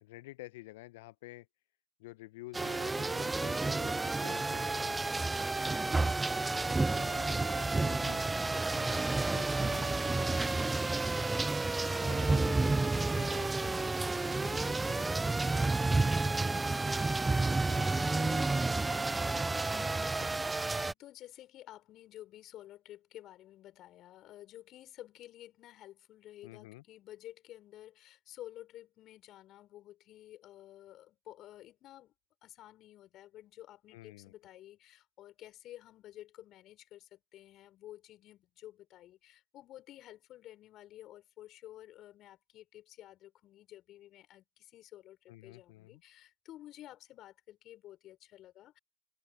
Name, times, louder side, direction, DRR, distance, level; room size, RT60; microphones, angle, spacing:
voice 1, 0.0-1.5 2.0-5.3 6.9-8.2 8.9-10.7 11.8-15.7 15.9-17.0 17.6-20.3 26.4-26.8 33.9-34.3 45.3-46.0, left 19 dB, 75° left, 0.9 m, -51 dB
sound 1, 2.5-20.9, right 3 dB, 20° right, 0.4 m, -31 dB
voice 2, 8.6-9.2 10.9-13.0 17.4-18.1 19.6-32.1 32.4-48.8, left 14 dB, 60° left, 6.0 m, -52 dB
hypercardioid pair, 60°, 0 cm